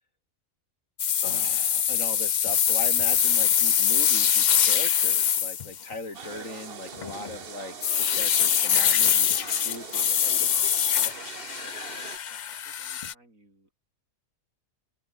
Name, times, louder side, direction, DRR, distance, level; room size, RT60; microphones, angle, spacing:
sound 1, 1.0-5.9 7.0-7.3 7.8-13.1, left 8 dB, 50° left, 0.5 m, -23 dB
voice 1, 1.2-10.7, left 3 dB, 75° left, 4.6 m, -40 dB
sound 2, 6.1-12.2, right 6 dB, 45° right, 1.3 m, -42 dB
voice 2, 11.3-11.8 12.3-13.7, right 2 dB, 85° right, 7.6 m, -60 dB
open air
omnidirectional pair, 1.4 m